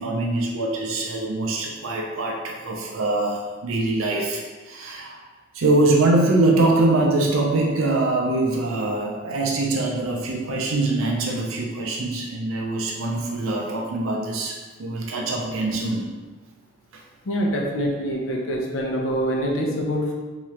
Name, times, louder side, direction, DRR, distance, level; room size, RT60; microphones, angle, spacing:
voice 1, 0.0-5.2 5.5-16.1 16.9-17.0, right 2 dB, 80° right, 0 dB, 0.5 m, -23 dB
voice 2, 17.3-20.1, equal, 75° left, -1 dB, 0.7 m, -25 dB
3.6 x 3.1 x 3.2 m, 1.3 s
head